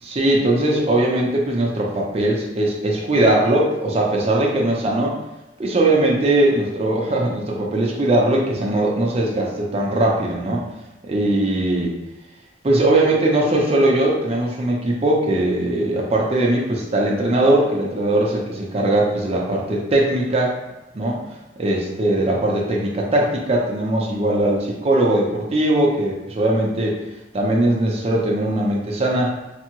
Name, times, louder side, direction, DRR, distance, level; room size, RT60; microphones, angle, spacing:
voice 1, 0.0-5.2 5.6-10.6 11.1-11.9 12.6-20.6 20.9-21.2 21.6-27.0 27.3-29.3, right 1 dB, 35° right, -2 dB, 0.5 m, -20 dB
3.4 x 2.0 x 3.0 m, 0.96 s
head